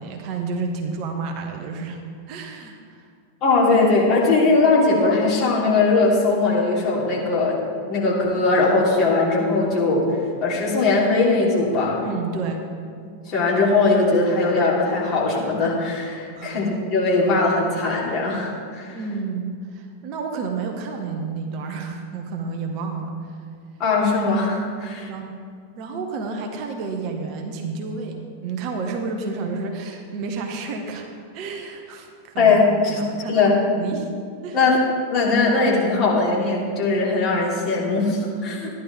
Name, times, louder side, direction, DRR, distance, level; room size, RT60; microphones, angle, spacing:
voice 1, 0.0-3.0 12.0-12.6 16.3-16.7 18.9-23.1 25.1-25.3 25.8-31.1 31.3-32.5 32.9-34.1 34.4-34.6 38.3-38.6, right 4 dB, 40° right, 3 dB, 1.3 m, -30 dB
voice 2, 3.4-7.6 7.9-10.0 10.4-12.1 13.3-18.9 23.8-25.1 32.4-33.0 33.3-33.6 34.5-34.8 35.1-38.7, left 3 dB, 35° left, -5 dB, 3.3 m, -20 dB
14.0 x 11.0 x 3.6 m, 2.2 s
figure-of-eight pair, 90°, 0 cm